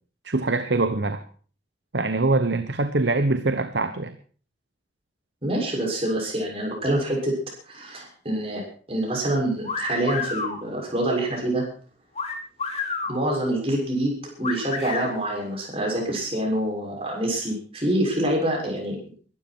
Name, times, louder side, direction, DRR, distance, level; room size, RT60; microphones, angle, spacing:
voice 1, 0.2-1.2 1.9-4.2, right 2 dB, 65° right, 10 dB, 1.0 m, -23 dB
voice 2, 5.4-7.3 7.7-8.6 8.9-11.6 13.1-19.0, right 1 dB, 30° right, 0 dB, 6.5 m, -26 dB
sound 1, 9.6-10.6 12.1-13.2 14.4-15.1, left 4 dB, 35° left, 2.7 m, -29 dB
22.0 x 12.5 x 4.6 m, 0.43 s
head